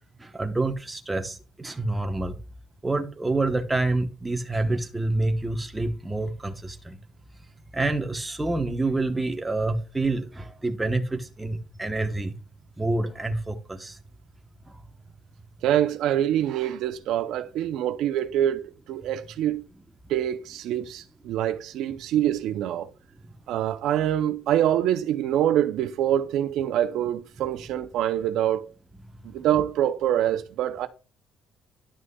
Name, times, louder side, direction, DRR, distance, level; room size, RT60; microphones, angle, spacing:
voice 1, 0.2-2.4 2.8-7.0 7.7-12.3 12.8-14.0 14.7-14.8, right 2 dB, 10° right, 0.9 m, -27 dB
voice 2, 15.6-19.7 20.1-22.9 23.5-28.7 29.2-30.9, right 11 dB, 75° right, 0.5 m, -25 dB
11.0 x 6.1 x 2.2 m
cardioid pair, 120°, 0 cm